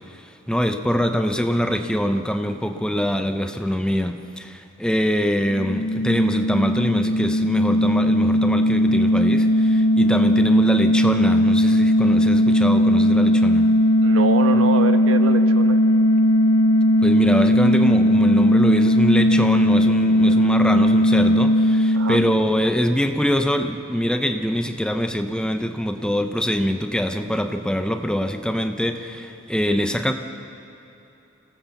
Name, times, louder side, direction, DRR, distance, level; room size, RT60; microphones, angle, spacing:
voice 1, 0.1-13.7 17.0-30.1, equal, 5° left, 7 dB, 0.8 m, -24 dB
sound 1, 5.5-23.0, equal, 85° left, 0.8 m, -18 dB
voice 2, 14.0-15.8 20.3-20.5 21.9-22.2, right 3 dB, 80° right, 8 dB, 1.2 m, -25 dB
25.5 x 18.0 x 7.1 m, 2.9 s
head